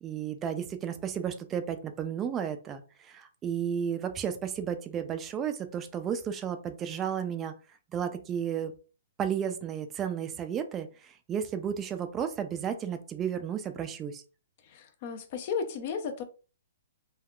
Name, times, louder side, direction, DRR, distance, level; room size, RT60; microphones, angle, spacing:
voice 1, 0.0-7.5 7.9-8.7 9.2-14.2, right 8 dB, 20° right, 0.4 m, -33 dB
voice 2, 14.6-16.2, left 6 dB, 45° left, 0.6 m, -34 dB
3.4 x 2.3 x 2.3 m
hypercardioid pair, 140°, 0 cm